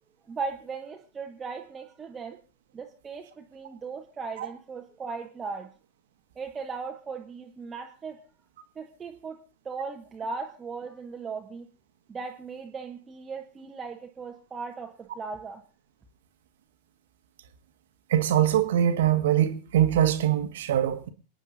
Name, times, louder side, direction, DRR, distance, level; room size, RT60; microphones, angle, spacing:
voice 1, 0.3-2.4 2.7-5.7 6.3-8.2 8.7-11.7 12.1-15.6, right 4 dB, 20° right, 1.2 m, -38 dB
voice 2, 18.1-21.1, right 11 dB, 60° right, 1.4 m, -23 dB
28.5 x 9.8 x 2.6 m
figure-of-eight pair, 90°, 0 cm